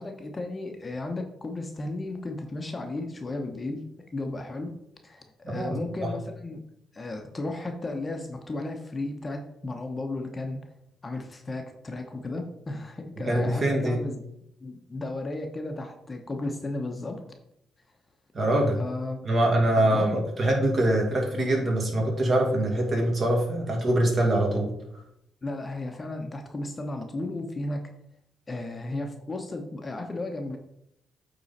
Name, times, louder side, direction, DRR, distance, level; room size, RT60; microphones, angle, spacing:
voice 1, 0.0-3.8 4.1-4.7 5.0-6.6 6.9-10.6 11.0-14.2 14.6-17.2 18.8-19.3 19.8-20.2 25.4-27.8 28.5-30.6, left 2 dB, 25° left, 4 dB, 0.9 m, -34 dB
voice 2, 5.4-6.1 13.3-14.0 18.3-18.8 19.3-24.7, right 1 dB, 40° right, 0 dB, 2.3 m, -24 dB
8.3 x 3.8 x 4.2 m, 0.79 s
cardioid pair, 90°, 0 cm